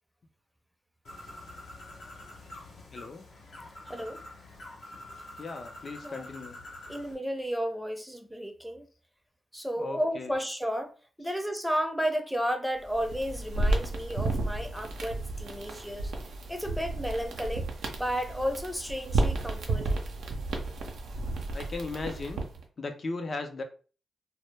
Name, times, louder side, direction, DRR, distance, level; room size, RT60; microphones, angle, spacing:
Bird, 1.0-7.1, left 1 dB, 75° left, 0.8 m, -46 dB
voice 1, 2.9-3.3 5.4-6.6 9.8-10.4 11.2-11.4 21.5-22.4 22.8-23.6, left 3 dB, 55° left, 0.5 m, -37 dB
voice 2, 3.9-4.2 6.0-6.3 6.9-8.9 9.5-10.9 11.2-16.1 16.5-17.7 18.0-20.0, equal, ahead, 0.6 m, -32 dB
sound 1, 12.8-22.6, right 2 dB, 85° right, 0.5 m, -32 dB
2.1 x 2.1 x 3.2 m
supercardioid pair, 45°, 0 cm